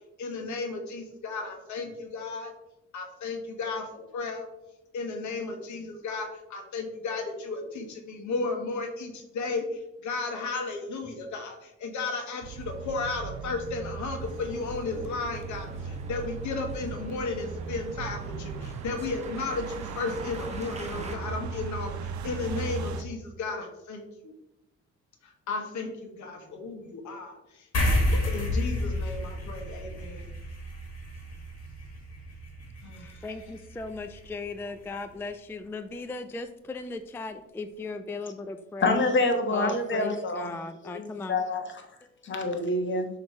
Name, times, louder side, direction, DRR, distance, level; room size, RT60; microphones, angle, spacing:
voice 1, 0.2-2.5 2.9-4.5 4.9-24.3 25.2-27.7 28.1-30.3 32.8-33.2, left 3 dB, 70° left, 4 dB, 1.3 m, -34 dB
sound 1, 12.4-23.0, right 5 dB, 70° right, 0.7 m, -37 dB
Male speech man speaking, 14.2-21.2, right 3 dB, 20° right, 1.0 m, -45 dB
sound 2, 27.7-34.5, left 1 dB, 55° left, 1.8 m, -31 dB
voice 2, 33.0-39.0 39.5-41.4, left 3 dB, 10° left, 9 dB, 0.3 m, -37 dB
voice 3, 38.8-40.5 40.9-41.0 41.3-41.6 42.2-43.1, left 2 dB, 40° left, 4 dB, 1.2 m, -26 dB
6.4 x 3.2 x 4.6 m, 0.89 s
cardioid pair, 90°, 30 cm